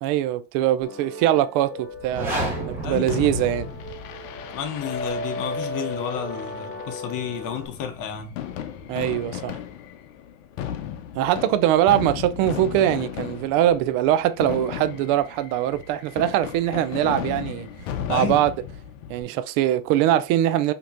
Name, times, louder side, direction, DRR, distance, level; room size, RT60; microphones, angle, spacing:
voice 1, 0.0-2.4 2.6-3.7 8.9-9.6 11.1-17.7 18.1-18.5 19.1-20.7, right 12 dB, 55° right, 0.5 m, -22 dB
sound 1, 0.8-7.7, left 1 dB, 25° left, 0.8 m, -35 dB
sound 2, 1.9-4.1, right 1 dB, 5° right, 1.9 m, -31 dB
voice 2, 2.8-3.2 4.5-8.3 18.1-18.5, left 8 dB, 55° left, 1.2 m, -31 dB
Fireworks, 3.1-19.2, left 9 dB, 75° left, 0.8 m, -35 dB
5.1 x 2.9 x 2.5 m
supercardioid pair, 110°, 40 cm